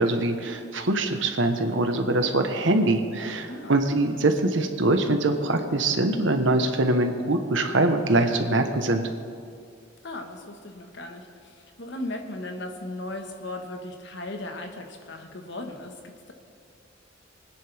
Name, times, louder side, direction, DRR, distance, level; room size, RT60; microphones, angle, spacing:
voice 1, 0.0-9.1, right 2 dB, 70° right, 6 dB, 1.1 m, -23 dB
voice 2, 3.5-3.8 10.0-16.3, left 1 dB, 60° left, 4 dB, 1.4 m, -37 dB
23.0 x 10.0 x 3.5 m, 2.3 s
head